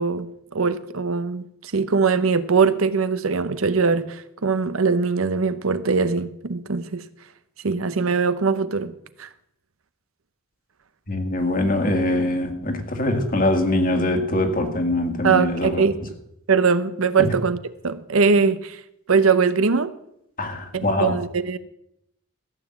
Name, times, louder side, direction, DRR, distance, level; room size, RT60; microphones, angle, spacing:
voice 1, 0.0-7.0 7.6-8.9 9.2-9.3 15.2-16.2 16.5-17.6 17.8-18.8 19.1-19.9 20.7-21.6, right 5 dB, 75° right, 0.8 m, -21 dB
voice 2, 11.1-15.9 17.2-17.3 20.4-21.2, left 1 dB, 40° left, 1.8 m, -23 dB
15.0 x 7.3 x 7.6 m
head